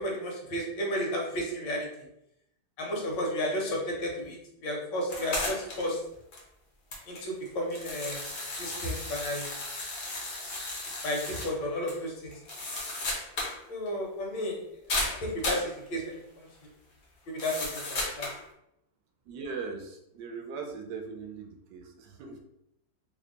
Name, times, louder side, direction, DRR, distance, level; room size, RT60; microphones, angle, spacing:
voice 1, 0.0-1.9 2.8-6.0 7.1-9.6 11.0-12.3 13.7-14.6 15.2-16.5 17.3-18.3, left 1 dB, 75° left, -1 dB, 1.5 m, -33 dB
sound 1, 5.1-5.9 6.3-6.4 6.9-11.5 11.9-12.0 12.3-13.6 13.9-14.0 14.9-15.7 17.4-18.4, left 2 dB, 55° left, 0.7 m, -34 dB
voice 2, 19.3-22.4, right 5 dB, 75° right, 4 dB, 1.2 m, -40 dB
3.4 x 2.1 x 3.8 m, 0.79 s
omnidirectional pair, 2.0 m